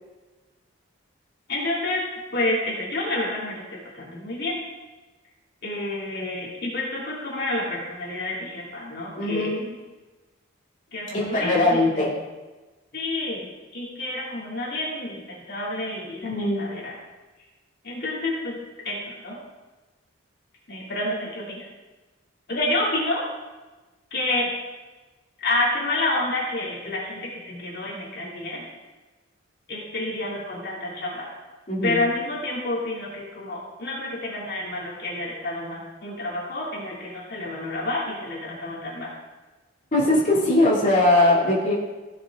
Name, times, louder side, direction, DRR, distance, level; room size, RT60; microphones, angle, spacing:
voice 1, 1.5-2.0 2.3-3.6 3.9-4.6 5.6-9.6 10.9-11.8 12.9-13.5 13.7-16.9 17.8-18.6 18.8-19.4 20.7-21.7 22.5-23.2 24.1-24.5 25.4-28.6 29.7-31.3 31.8-39.1, left 2 dB, 55° left, -4 dB, 2.5 m, -29 dB
voice 2, 9.2-9.7 11.1-12.2 16.2-16.7 31.7-32.0 39.9-41.7, left 2 dB, 40° left, -6 dB, 2.5 m, -21 dB
16.5 x 6.5 x 3.6 m, 1.2 s
head